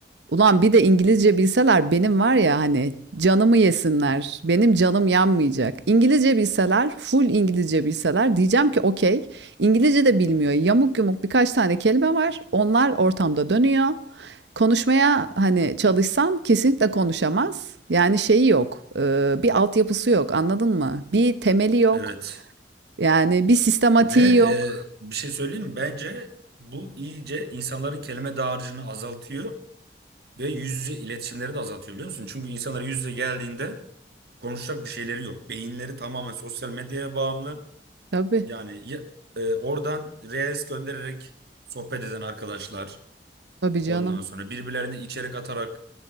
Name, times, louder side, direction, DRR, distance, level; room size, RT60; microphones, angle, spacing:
voice 1, 0.3-17.6 17.9-22.0 23.0-24.5 38.1-38.5 43.6-44.2, right 3 dB, 85° right, 0.8 m, -20 dB
voice 2, 21.9-22.4 24.0-26.3 26.6-29.6 30.4-33.8 34.4-37.6 38.5-39.1 39.3-41.3 41.7-43.0 43.8-45.8, right 2 dB, 65° right, 1.5 m, -31 dB
21.0 x 7.2 x 6.7 m
head